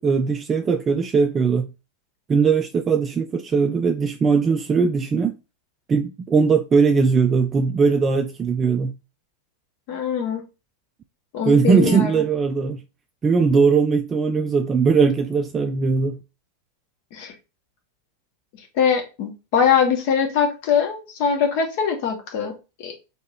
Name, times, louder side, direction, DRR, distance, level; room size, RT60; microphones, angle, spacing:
voice 1, 0.0-1.7 2.3-5.4 5.9-8.9 11.4-12.8 13.2-16.2, right 5 dB, 20° right, 0.3 m, -19 dB
voice 2, 9.9-10.4 11.3-12.1 17.1-17.3 18.7-22.5 22.8-22.9, left 7 dB, 45° left, 1.1 m, -22 dB
3.5 x 2.8 x 4.3 m
figure-of-eight pair, 90°, 0 cm